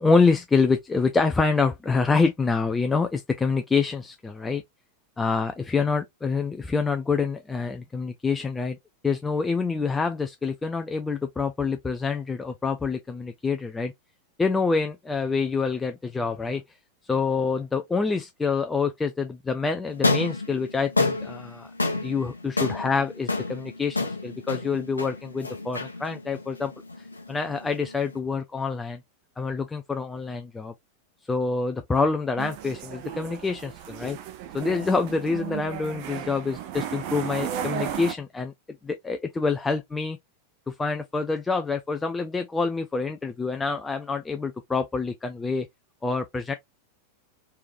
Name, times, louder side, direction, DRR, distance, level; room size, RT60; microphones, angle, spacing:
voice 1, 0.0-4.6 5.2-8.8 9.0-13.9 14.4-16.6 17.1-21.7 22.0-26.7 27.3-29.0 29.4-30.7 31.3-33.7 34.0-34.2 34.5-38.5 38.8-40.2 40.7-45.7 46.0-46.5, left 4 dB, 10° left, 0.4 m, -26 dB
sound 1, 19.9-28.2, left 3 dB, 80° left, 0.9 m, -30 dB
sound 2, 32.4-38.1, right 9 dB, 45° right, 0.5 m, -34 dB
3.4 x 3.1 x 2.4 m
figure-of-eight pair, 90°, 0 cm